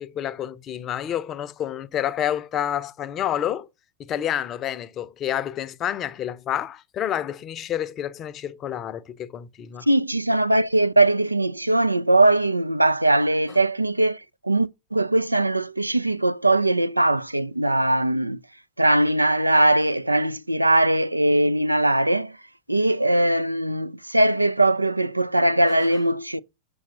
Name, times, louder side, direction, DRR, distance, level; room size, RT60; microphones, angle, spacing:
voice 1, 0.0-3.7 4.0-9.9 25.8-25.9, left 10 dB, 30° left, 0.6 m, -29 dB
voice 2, 9.8-18.4 18.8-22.4 22.7-26.4, right 1 dB, 85° right, 0.3 m, -20 dB
7.0 x 6.5 x 3.8 m
figure-of-eight pair, 90°, 0 cm